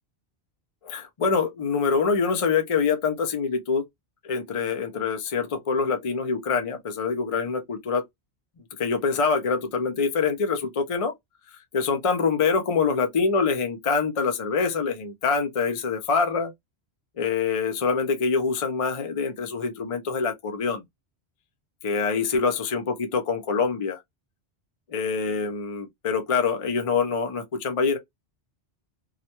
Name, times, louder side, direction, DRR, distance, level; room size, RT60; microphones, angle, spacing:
voice 1, 0.8-3.8 4.2-8.0 8.8-11.1 11.7-16.5 17.2-20.8 21.8-24.0 24.9-28.0, left 5 dB, 45° left, 0.5 m, -25 dB
2.4 x 2.1 x 2.8 m
omnidirectional pair, 1.1 m